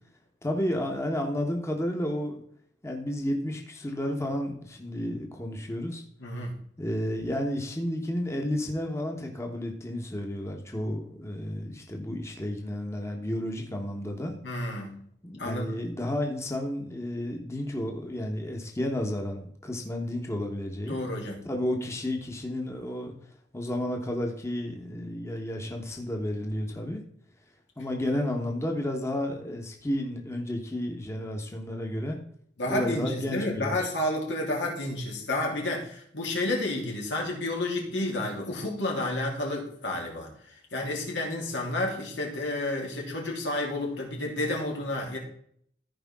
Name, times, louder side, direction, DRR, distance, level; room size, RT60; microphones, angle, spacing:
voice 1, 0.4-2.4 2.8-6.0 6.8-14.3 15.2-21.0 21.4-23.1 23.5-27.0 27.8-32.2 32.6-33.8, left 1 dB, 15° left, 2 dB, 1.2 m, -32 dB
voice 2, 6.2-6.5 14.4-14.9 15.4-15.7 20.9-21.4 32.6-45.2, left 1 dB, 90° left, -1 dB, 2.9 m, -31 dB
14.5 x 5.1 x 3.6 m, 0.64 s
head